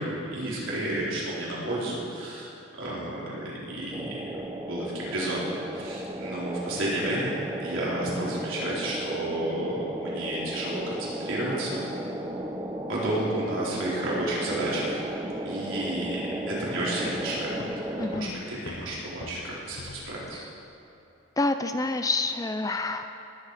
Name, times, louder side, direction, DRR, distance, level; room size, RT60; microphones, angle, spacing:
voice 1, 0.0-2.5 2.8-7.3 7.6-11.8 12.9-15.0 15.4-17.5 17.9-20.4, right 1 dB, 70° right, -7 dB, 4.2 m, -31 dB
sound 1, 3.9-18.2, right 1 dB, 15° right, 0.8 m, -35 dB
sound 2, 17.0-20.7, left 2 dB, 55° left, 0.8 m, -44 dB
voice 2, 18.0-18.4 20.3-20.5 21.4-23.1, left 2 dB, 15° left, 8 dB, 0.4 m, -28 dB
19.5 x 10.5 x 4.9 m, 2.8 s
head